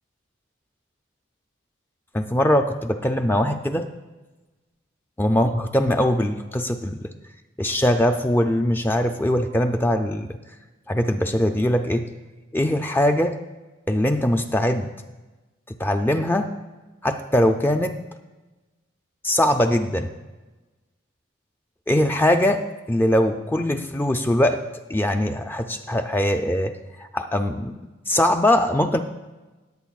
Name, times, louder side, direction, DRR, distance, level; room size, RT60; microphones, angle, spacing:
voice 1, 2.1-3.9 5.2-7.1 7.6-10.4 10.9-12.1 12.5-13.4 13.9-14.9 15.7-16.5 17.0-18.0 19.2-20.1 21.9-24.6 24.9-26.7 27.0-27.7 28.1-29.0, left 1 dB, 10° left, 6 dB, 0.3 m, -21 dB
17.5 x 8.4 x 2.4 m, 1.2 s
head